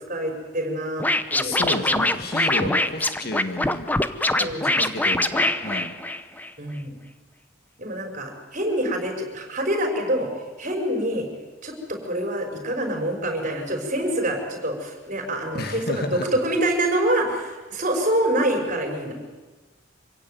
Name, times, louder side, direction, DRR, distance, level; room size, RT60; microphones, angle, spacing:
voice 1, 0.1-2.1 2.6-2.9 4.4-4.8 6.6-6.9 7.8-10.3 10.6-11.3 11.6-19.1, right 1 dB, 40° right, 3 dB, 5.8 m, -26 dB
Scratching (performance technique), 1.0-6.5, left 2 dB, 10° left, 0.9 m, -23 dB
voice 2, 1.4-3.9 4.4-4.5 4.8-5.9 15.5-16.3, left 2 dB, 55° left, 7 dB, 1.9 m, -31 dB
26.0 x 16.5 x 9.4 m, 1.3 s
head